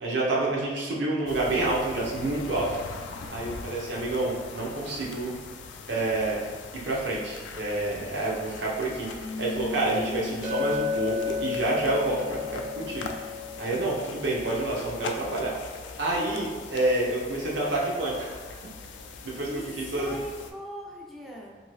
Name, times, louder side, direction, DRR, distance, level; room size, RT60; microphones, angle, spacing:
voice 1, 0.0-2.7 3.3-5.3 5.9-13.1 13.6-15.5 16.0-18.5 19.2-19.5 19.8-20.2, right 2 dB, 80° right, -4 dB, 0.7 m, -28 dB
sound 1, 1.3-20.5, left 4 dB, 80° left, 0.3 m, -42 dB
Piano, 9.1-14.3, left 3 dB, 50° left, 0.6 m, -40 dB
Chink clink, 10.4-14.9, left 6 dB, 40° right, 0.6 m, -33 dB
voice 2, 19.3-21.6, equal, ahead, -3 dB, 0.3 m, -41 dB
2.7 x 2.6 x 3.1 m, 1.4 s
head